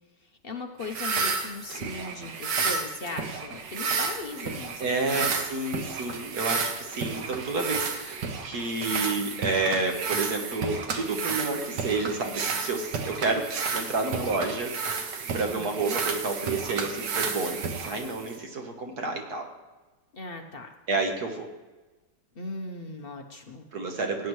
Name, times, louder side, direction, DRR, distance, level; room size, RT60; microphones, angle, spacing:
voice 1, 0.2-5.3 15.5-16.0 20.1-20.7 22.3-23.7, left 3 dB, 45° left, 4 dB, 0.8 m, -38 dB
sound 1, 0.8-18.4, right 5 dB, 85° right, 1.7 m, -32 dB
voice 2, 4.8-13.5 13.7-19.5 20.9-21.5 23.7-24.3, right 3 dB, 65° right, 3 dB, 1.8 m, -30 dB
17.5 x 9.3 x 3.2 m, 1.2 s
omnidirectional pair, 1.9 m